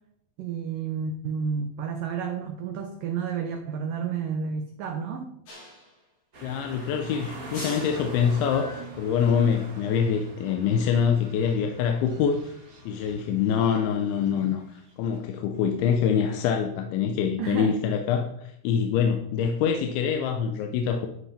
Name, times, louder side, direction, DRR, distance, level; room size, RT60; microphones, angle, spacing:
voice 1, 0.4-5.3 17.4-17.8, right 6 dB, 90° right, 6 dB, 1.9 m, -31 dB
sound 1, 5.5-6.0 7.4-8.2, left 1 dB, 50° left, 5.4 m, -42 dB
sound 2, 6.3-15.2 15.5-15.6, right 2 dB, 55° right, 0.9 m, -44 dB
voice 2, 6.4-12.5 12.9-21.1, left 7 dB, 80° left, 5 dB, 3.2 m, -25 dB
13.5 x 10.5 x 4.4 m, 0.76 s
omnidirectional pair, 5.4 m